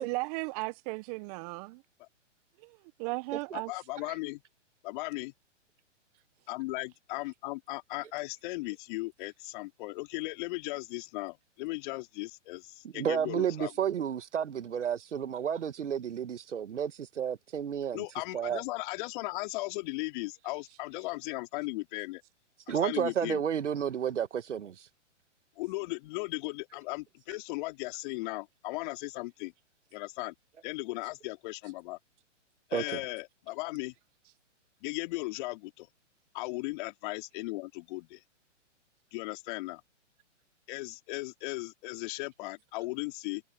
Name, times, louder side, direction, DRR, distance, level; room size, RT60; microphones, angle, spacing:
voice 1, 0.0-1.8 2.6-3.7, right 26 dB, 30° right, 1.0 m, -36 dB
voice 2, 3.5-4.4 4.8-5.3 6.5-13.7 17.9-22.2 22.7-23.4 25.6-29.5 29.9-30.3 30.6-32.0 32.7-33.9 34.8-35.9 36.3-38.2 39.1-39.8 40.7-43.4, left 22 dB, 40° left, 4.0 m, -37 dB
voice 3, 12.8-18.0 18.3-18.6 22.7-24.9 32.7-32.8, right 8 dB, 70° right, 1.6 m, -31 dB
hypercardioid pair, 125°, 37 cm